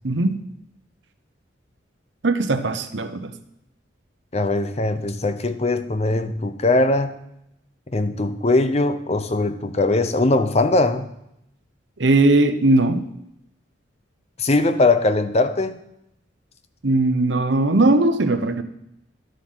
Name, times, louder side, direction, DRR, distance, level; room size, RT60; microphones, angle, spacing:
voice 1, 0.0-0.4 2.2-3.3 12.0-13.1 16.8-18.6, right 2 dB, 70° right, 8 dB, 0.9 m, -19 dB
voice 2, 4.3-7.1 7.9-11.1 14.4-15.7, left 2 dB, 35° left, 10 dB, 0.7 m, -20 dB
11.5 x 7.0 x 5.6 m, 0.80 s
head